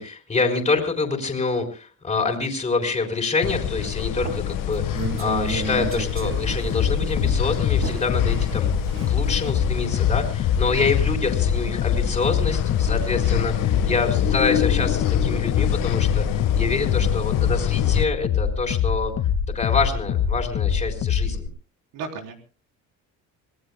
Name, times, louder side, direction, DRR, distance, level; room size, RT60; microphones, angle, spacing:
voice 1, 0.0-19.1 19.5-21.5, left 4 dB, 20° left, 3 dB, 3.9 m, -26 dB
sound 1, 3.4-18.0, left 11 dB, 75° left, 1.4 m, -27 dB
sound 2, 4.2-16.8 17.2-17.4, right 5 dB, 40° right, 1.5 m, -36 dB
sound 3, 6.7-21.5, left 7 dB, 50° left, 1.8 m, -24 dB
voice 2, 13.1-13.6 21.9-22.3, right 5 dB, 80° right, 2 dB, 4.1 m, -37 dB
26.5 x 19.0 x 2.2 m, 0.36 s
cardioid pair, 145°, 33 cm